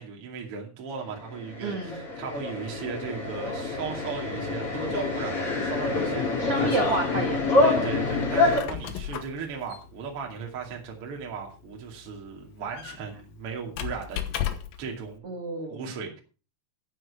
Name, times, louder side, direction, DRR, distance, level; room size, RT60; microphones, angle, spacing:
voice 1, 0.0-6.9 7.6-14.2 14.8-15.3 15.7-16.2, right 6 dB, 40° right, 2.4 m, -37 dB
sound 1, 1.3-8.6, left 3 dB, 35° left, 3.2 m, -26 dB
voice 2, 1.6-2.0 6.4-7.7 8.9-9.1 15.2-15.8, right 3 dB, 80° right, 1.2 m, -31 dB
Squeak, 8.3-14.9, left 10 dB, 85° left, 2.0 m, -36 dB
11.0 x 9.5 x 4.9 m
omnidirectional pair, 5.8 m